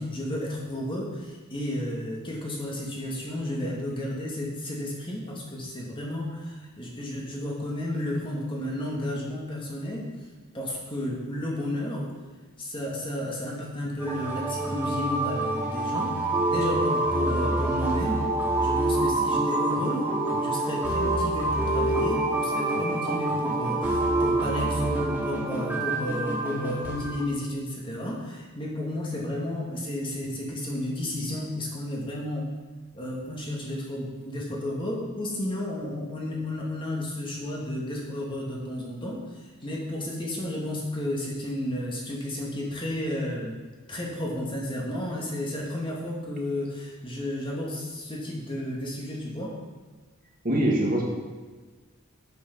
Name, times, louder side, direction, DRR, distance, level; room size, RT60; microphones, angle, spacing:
voice 1, 0.0-10.1 10.5-12.1 12.6-16.2 16.5-18.3 18.6-20.1 20.4-32.5 32.9-43.6 43.9-49.6, left 1 dB, 25° left, -3 dB, 1.9 m, -32 dB
sound 1, 14.0-27.2, right 2 dB, 10° right, 2.1 m, -26 dB
voice 2, 50.4-51.0, right 1 dB, 40° right, -2 dB, 1.9 m, -23 dB
8.5 x 7.8 x 5.8 m, 1.3 s
head